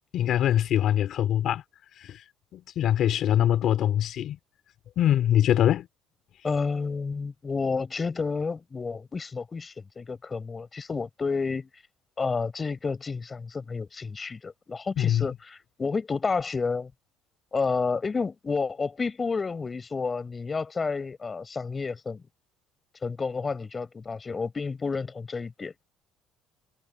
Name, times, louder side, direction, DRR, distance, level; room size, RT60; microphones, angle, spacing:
voice 1, 0.1-1.6 2.0-2.2 2.5-4.4 5.0-5.9 15.0-15.3, left 11 dB, 60° left, 3.4 m, -23 dB
voice 2, 6.4-11.7 12.2-16.9 17.5-22.2 23.0-25.8, left 4 dB, 25° left, 5.2 m, -30 dB
cardioid pair, 115°, 0 cm